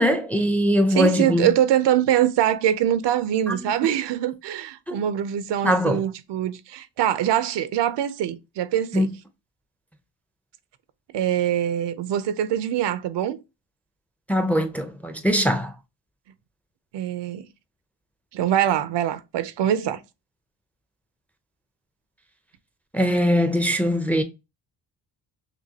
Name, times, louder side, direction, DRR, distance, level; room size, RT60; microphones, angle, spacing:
voice 1, 0.0-1.5 3.5-3.7 4.9-5.0 5.6-6.0 8.9-9.1 14.3-15.7 22.9-24.2, equal, 5° left, 0.4 m, -21 dB
voice 2, 1.0-9.1 11.1-13.4 16.9-17.5 18.3-20.0, right 11 dB, 85° right, 0.6 m, -23 dB
6.1 x 2.2 x 2.8 m
cardioid pair, 115°, 41 cm